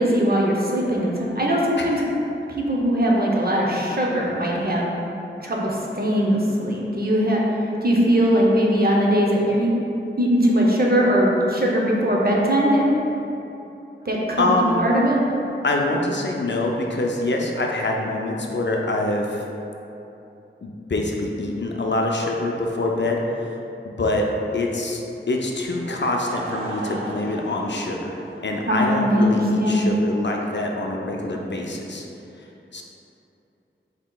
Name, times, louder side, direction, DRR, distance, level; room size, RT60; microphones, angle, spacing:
voice 1, 0.0-2.0 2.6-4.9 5.4-7.4 7.8-9.7 10.2-12.8 14.0-15.2 28.7-29.8, equal, 50° right, -3 dB, 0.6 m, -20 dB
voice 2, 14.4-14.9 15.6-19.4 20.6-23.2 24.0-24.3 24.5-32.1 32.7-32.8, left 2 dB, 60° left, 0 dB, 0.4 m, -25 dB
Laughter / Crowd, 25.7-29.2, right 2 dB, 90° right, 0.5 m, -36 dB
5.7 x 2.8 x 2.2 m, 2.9 s
wide cardioid pair, 45°, 20 cm